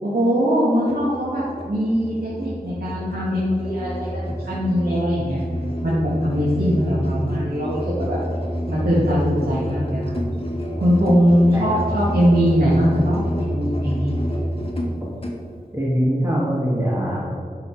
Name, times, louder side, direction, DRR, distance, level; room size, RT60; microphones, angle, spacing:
voice 1, 0.0-5.4 5.8-7.8 8.1-8.2 8.7-10.1 10.8-14.1, equal, 90° right, -8 dB, 1.7 m, -21 dB
Musical instrument, 0.8-15.4, equal, 40° left, 1.7 m, -28 dB
voice 2, 15.7-17.4, equal, 20° right, -6 dB, 1.7 m, -22 dB
11.0 x 5.8 x 4.7 m, 2.3 s
wide cardioid pair, 50°, 16 cm